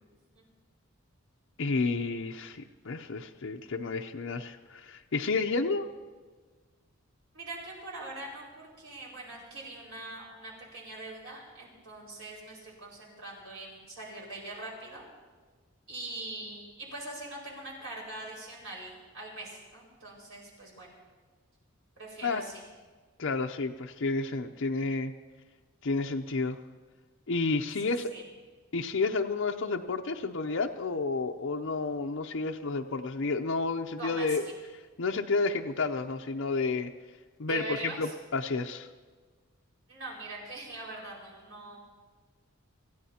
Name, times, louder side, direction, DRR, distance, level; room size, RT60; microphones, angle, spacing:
voice 1, 1.6-5.9 22.2-22.4 23.2-25.1 25.8-26.6 27.3-28.1 28.7-34.4 35.0-36.9 37.4-38.9, left 3 dB, 60° left, 3 dB, 0.6 m, -31 dB
voice 2, 7.3-15.0 15.9-20.9 22.0-22.6 27.8-28.2 34.0-34.5 37.5-38.1 39.9-41.8, right 2 dB, 75° right, -4 dB, 5.1 m, -42 dB
26.5 x 15.5 x 2.9 m, 1.4 s
head